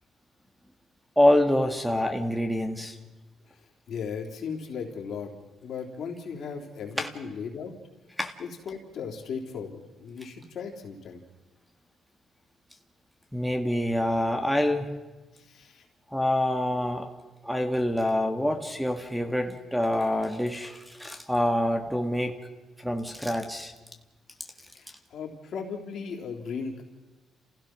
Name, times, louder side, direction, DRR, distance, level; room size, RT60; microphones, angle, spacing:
voice 1, 1.2-3.0 7.0-7.1 8.2-8.3 13.3-14.9 16.1-17.1 17.4-22.4 22.8-23.7, left 1 dB, ahead, 6 dB, 1.8 m, -26 dB
voice 2, 3.9-5.3 5.6-7.7 8.4-11.2 15.3-15.8 24.7-26.8, left 6 dB, 65° left, 1 dB, 3.6 m, -37 dB
29.5 x 16.0 x 6.2 m, 1.2 s
cardioid pair, 90°, 0 cm